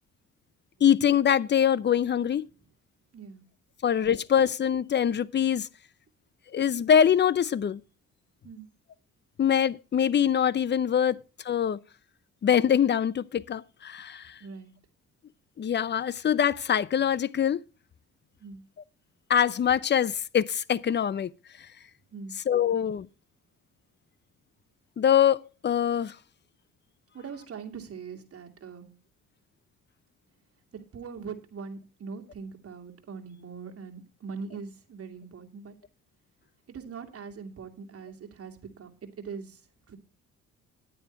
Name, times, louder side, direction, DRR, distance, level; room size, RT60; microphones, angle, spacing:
voice 1, 0.8-2.5 3.8-5.7 6.5-7.8 9.4-11.2 11.4-11.8 12.4-14.4 15.6-17.6 19.3-21.3 22.5-23.1 25.0-26.2, left 8 dB, 35° left, 0.6 m, -24 dB
voice 2, 3.1-3.4 8.4-8.7 14.4-14.7 18.4-18.6 22.1-22.3 27.1-28.9 30.9-35.8 36.7-39.6 39.9-40.0, right 5 dB, 50° right, 2.5 m, -41 dB
10.0 x 9.0 x 4.5 m
cardioid pair, 90°, 30 cm